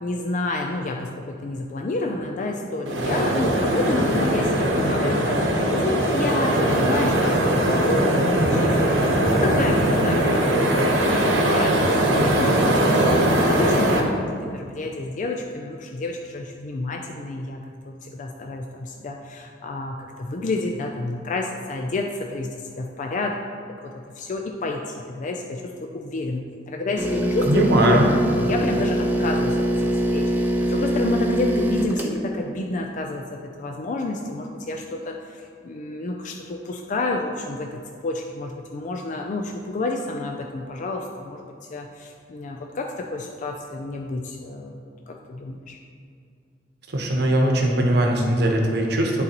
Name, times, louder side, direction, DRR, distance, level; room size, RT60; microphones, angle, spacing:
voice 1, 0.0-14.1 14.4-23.4 23.8-44.8 45.1-45.8, left 2 dB, 40° left, 2 dB, 0.4 m, -30 dB
sound 1, 2.8-14.0, right 1 dB, 90° right, 1.0 m, -20 dB
sound 2, 27.0-32.2, right 1 dB, 10° right, 0.5 m, -23 dB
voice 2, 27.5-28.1 46.9-49.2, right 1 dB, 60° right, 0 dB, 0.9 m, -20 dB
10.5 x 3.9 x 2.9 m, 2.4 s
head